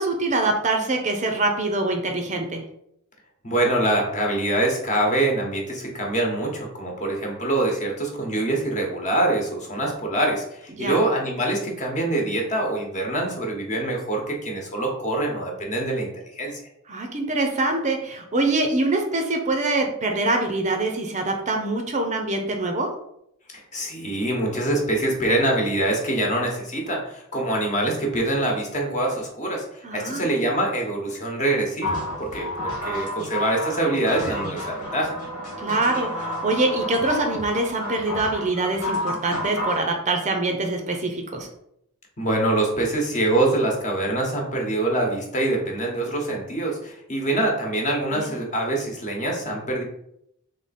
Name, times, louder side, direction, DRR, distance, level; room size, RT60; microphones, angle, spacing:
voice 1, 0.0-2.6 10.7-11.0 16.9-22.9 29.8-30.3 35.6-41.5 48.1-48.3, right 2 dB, 35° right, 4 dB, 0.6 m, -24 dB
voice 2, 3.4-16.6 23.7-35.2 42.2-49.8, right 1 dB, 35° left, 0 dB, 1.1 m, -24 dB
sound 1, 31.8-39.8, left 1 dB, 90° left, 1.7 m, -31 dB
3.6 x 3.3 x 4.1 m, 0.76 s
head